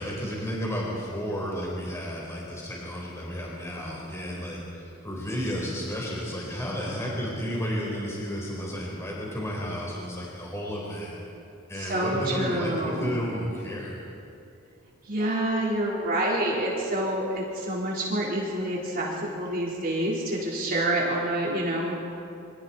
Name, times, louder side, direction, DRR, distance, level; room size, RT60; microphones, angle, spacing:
voice 1, 0.0-11.2 11.7-14.0, equal, 15° left, -4 dB, 4.2 m, -32 dB
voice 2, 11.8-13.1 15.1-22.0, right 1 dB, 45° right, -4 dB, 4.2 m, -27 dB
28.0 x 25.0 x 4.4 m, 2.5 s
head